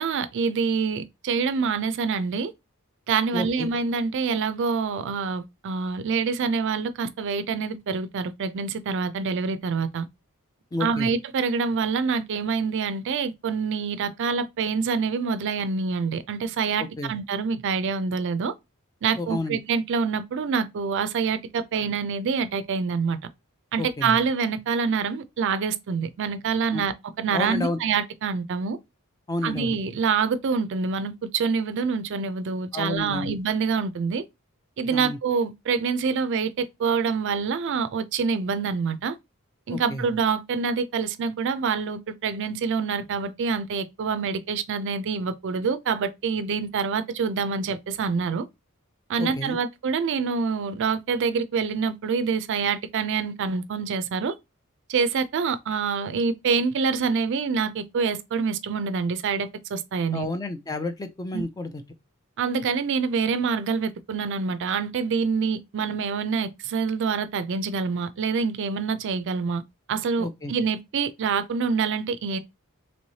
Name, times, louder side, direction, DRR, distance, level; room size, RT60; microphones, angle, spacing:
voice 1, 0.0-2.5 3.1-10.1 10.8-18.5 19.0-23.2 23.7-28.8 29.4-34.2 34.8-39.1 39.7-48.4 49.1-54.3 54.9-60.3 61.3-61.4 62.4-69.6 69.9-72.4, right 5 dB, 55° right, 0.4 m, -26 dB
voice 2, 3.3-3.7 10.7-11.1 16.8-17.1 19.2-19.6 23.8-24.1 26.7-26.8 27.3-27.8 29.3-29.7 32.7-33.3 34.9-35.2 39.7-40.0 49.2-49.6 60.1-61.8 70.2-70.5, left 2 dB, 15° left, 0.4 m, -30 dB
3.1 x 3.0 x 2.7 m
head